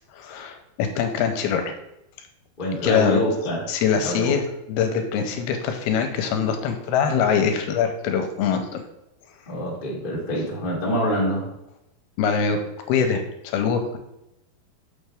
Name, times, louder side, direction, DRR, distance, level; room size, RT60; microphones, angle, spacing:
voice 1, 0.1-1.7 2.8-3.2 3.7-4.4 4.7-8.8 12.2-14.0, left 7 dB, 80° left, 6 dB, 2.5 m, -23 dB
voice 2, 2.6-3.7 4.0-4.4 9.5-11.5, equal, 30° left, -4 dB, 0.9 m, -25 dB
6.5 x 6.4 x 3.5 m, 0.87 s
omnidirectional pair, 4.7 m